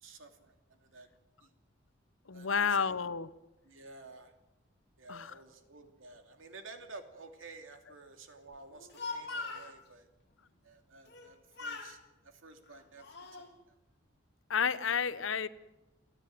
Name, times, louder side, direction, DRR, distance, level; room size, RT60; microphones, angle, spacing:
voice 1, 0.0-1.1 1.4-1.5 2.3-2.9 3.6-4.3 5.0-10.1 10.6-13.8, right 3 dB, 90° right, 6 dB, 2.8 m, -52 dB
voice 2, 2.3-3.3 5.1-5.3 14.5-15.5, left 6 dB, 85° left, 15 dB, 0.9 m, -30 dB
Speech, 8.7-9.7 11.1-11.3 11.6-12.0 12.7-13.5, left 3 dB, 55° left, 3.0 m, -41 dB
29.5 x 10.0 x 9.2 m, 0.99 s
head